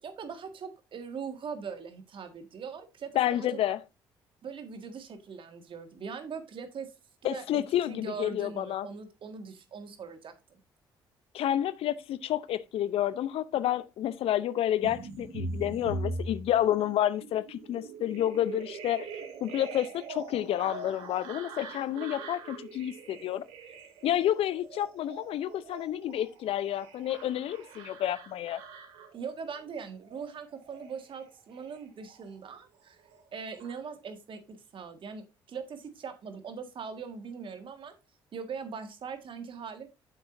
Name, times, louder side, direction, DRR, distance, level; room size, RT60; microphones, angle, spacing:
voice 1, 0.0-3.5 4.4-7.0 7.2-10.6 29.1-33.0 33.3-37.9 38.3-39.9, right 6 dB, 55° right, 1.8 m, -41 dB
voice 2, 3.2-3.8 7.2-8.9 11.3-19.1 19.4-23.4 24.0-28.6, left 11 dB, 65° left, 0.7 m, -29 dB
sound 1, 14.8-32.6 32.9-33.8, right 3 dB, 75° right, 1.8 m, -42 dB
9.2 x 7.1 x 2.6 m
hypercardioid pair, 50°, 11 cm